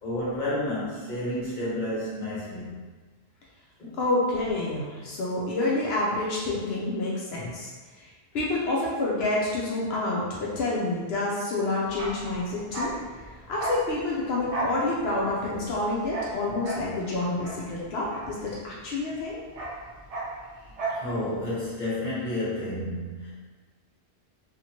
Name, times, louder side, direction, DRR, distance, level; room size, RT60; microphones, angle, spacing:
voice 1, 0.0-2.7 3.8-4.0 20.9-23.3, left 1 dB, 50° left, -9 dB, 1.2 m, -31 dB
voice 2, 4.0-7.7 8.0-8.1 8.3-12.9 13.5-19.4, left 2 dB, 80° left, -5 dB, 0.8 m, -28 dB
Bark, 11.9-18.9 19.2-21.1 21.3-21.5, right 2 dB, 50° right, 0.5 m, -35 dB
2.8 x 2.5 x 2.8 m, 1.4 s
omnidirectional pair, 1.0 m